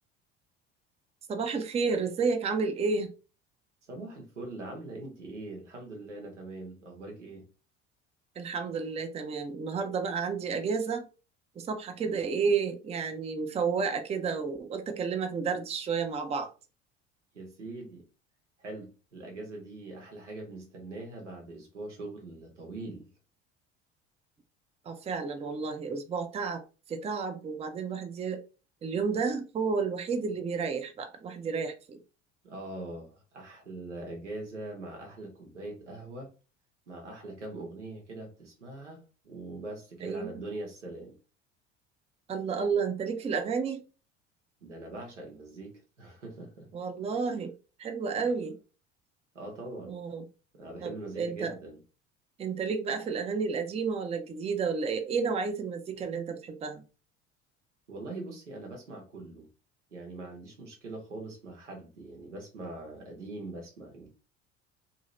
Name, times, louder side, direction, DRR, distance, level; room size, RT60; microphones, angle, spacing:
voice 1, 1.3-3.1 8.4-11.1 11.6-16.5 24.9-26.6 26.9-28.4 28.8-32.0 40.0-40.4 42.3-43.8 46.7-47.5 47.8-48.6 49.8-50.2 50.8-51.6 52.4-56.8, right 5 dB, 20° right, 0.5 m, -31 dB
voice 2, 3.9-7.5 17.3-18.0 18.6-23.1 32.4-36.3 36.9-41.1 44.6-46.7 49.3-49.9 50.6-51.8 57.9-59.5 59.9-64.1, right 2 dB, 85° right, 1.0 m, -42 dB
2.7 x 2.6 x 3.1 m
figure-of-eight pair, 65°, 35 cm